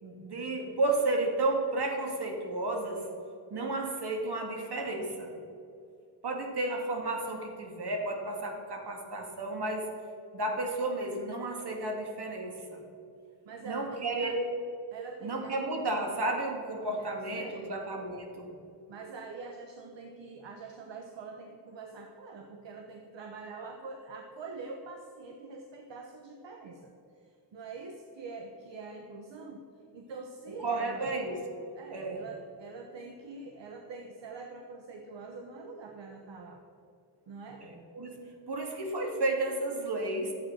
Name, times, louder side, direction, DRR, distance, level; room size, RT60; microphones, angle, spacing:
voice 1, 0.0-3.0 3.5-5.3 6.2-9.9 10.3-12.8 13.7-14.3 15.2-18.5 30.6-31.6 31.9-32.2 37.6-38.2 38.5-40.3, right 2 dB, 60° right, 2 dB, 2.4 m, -32 dB
voice 2, 13.4-14.4 14.9-15.6 17.0-17.8 18.9-27.0 27.5-29.6 29.9-31.1 31.7-36.6 37.3-37.6 38.0-38.1, right 4 dB, 75° right, 4 dB, 1.1 m, -44 dB
11.5 x 8.2 x 6.3 m, 2.6 s
cardioid pair, 75°, 44 cm